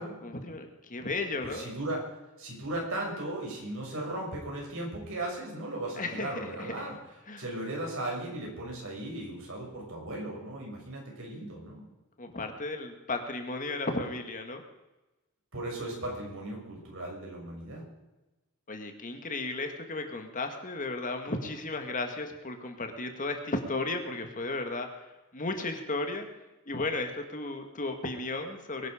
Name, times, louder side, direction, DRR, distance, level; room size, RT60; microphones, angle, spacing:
voice 1, 0.2-1.7 6.0-6.7 7.3-7.4 12.2-14.6 18.7-24.9 25.3-26.3 26.7-28.9, left 2 dB, 40° left, 5 dB, 1.9 m, -34 dB
voice 2, 1.4-2.0 2.4-7.0 7.4-11.8 15.5-17.8, right 1 dB, 65° right, -1 dB, 6.6 m, -37 dB
22.5 x 11.0 x 5.1 m, 1.0 s
head